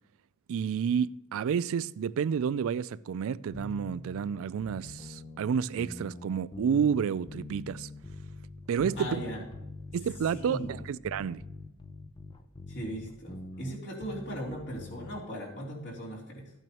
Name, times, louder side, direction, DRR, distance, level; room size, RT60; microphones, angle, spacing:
voice 1, 0.5-7.9 8.7-9.1 9.9-11.4, right 7 dB, 65° right, 0.3 m, -30 dB
sound 1, 3.5-15.3, left 2 dB, 20° left, 0.6 m, -44 dB
voice 2, 9.0-9.4 9.9-10.0 10.3-10.7 12.7-16.5, equal, 55° left, 3.5 m, -38 dB
13.5 x 9.1 x 3.0 m
head